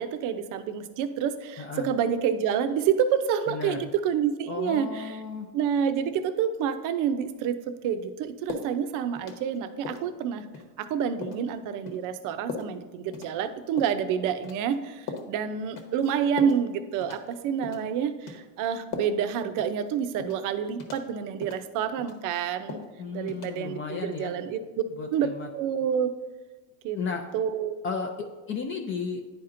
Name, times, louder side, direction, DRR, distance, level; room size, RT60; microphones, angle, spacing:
voice 1, 0.0-5.2 5.5-10.4 10.8-22.8 23.1-24.6 25.1-26.1 26.8-27.0 27.3-27.8, right 8 dB, 50° right, 10 dB, 0.6 m, -28 dB
voice 2, 1.6-1.9 3.5-3.8 4.5-5.5 23.0-24.3 25.0-25.5 26.9-27.2 27.8-29.2, left 5 dB, 30° left, 3 dB, 0.5 m, -34 dB
sound 1, 8.5-8.7 9.2-9.6 9.8-10.1 10.5-10.7 11.2-11.4 11.9-12.0 12.5-12.7 13.1-13.3 13.8-14.0 14.4-14.8 15.1-15.3 15.8-16.1 16.4-16.6 17.0-17.3 17.6-17.9 18.3-18.4 18.9-19.3 19.6-19.7 20.2-20.4 20.8-21.1 21.4-21.6 22.0-22.4 22.7-22.9 23.3-23.5, left 5 dB, 50° left, 1.2 m, -38 dB
10.5 x 4.3 x 2.5 m, 1.2 s
supercardioid pair, 130°, 42 cm